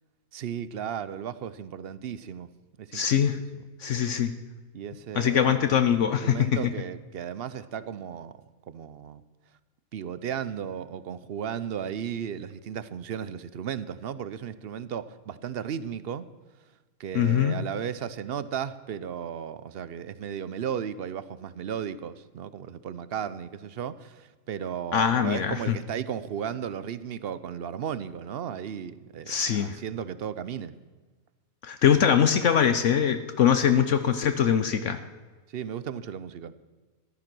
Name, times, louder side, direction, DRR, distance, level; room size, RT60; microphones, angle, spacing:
voice 1, 0.3-2.5 2.8-3.1 4.7-5.8 6.2-8.4 8.7-9.2 9.9-16.3 17.0-30.7 35.5-36.5, right 8 dB, 60° right, 15 dB, 0.7 m, -35 dB
voice 2, 2.9-3.4 3.8-4.3 5.1-6.7 17.1-17.6 24.9-25.7 29.3-29.8 31.6-35.0, left 8 dB, 65° left, 9 dB, 1.0 m, -23 dB
14.5 x 12.0 x 6.0 m, 1.3 s
omnidirectional pair, 1.5 m